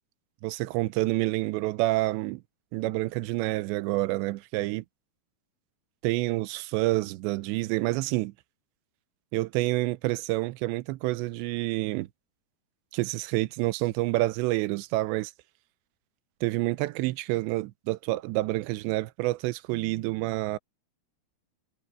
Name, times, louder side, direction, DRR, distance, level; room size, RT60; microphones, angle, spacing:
voice 1, 0.4-2.4 2.7-4.8 6.0-8.3 9.3-12.1 12.9-15.3 16.4-20.6, right 19 dB, 85° right, 3.0 m, -28 dB
omnidirectional pair, 5.1 m